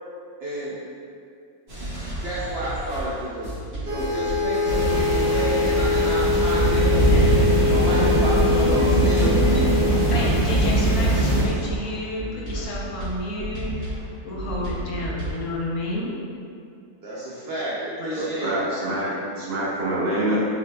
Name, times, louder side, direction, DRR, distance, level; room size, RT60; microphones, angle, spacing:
voice 1, 0.4-0.8 2.2-3.5 3.8-9.3 17.0-18.7, right 1 dB, 65° right, -7 dB, 0.6 m, -30 dB
sound 1, 1.7-11.9 12.2-15.5, right 1 dB, 45° right, 1.4 m, -32 dB
sound 2, 3.9-11.6, left 3 dB, 15° right, 0.6 m, -24 dB
sound 3, 4.7-11.4, right 1 dB, 50° left, 1.2 m, -21 dB
voice 2, 7.6-7.9 8.5-9.7 10.1-13.9 14.2-16.1, left 1 dB, 75° left, -4 dB, 1.2 m, -30 dB
voice 3, 17.8-20.5, right 1 dB, 80° right, -8 dB, 1.6 m, -26 dB
6.3 x 2.7 x 2.2 m, 2.4 s
omnidirectional pair, 1.6 m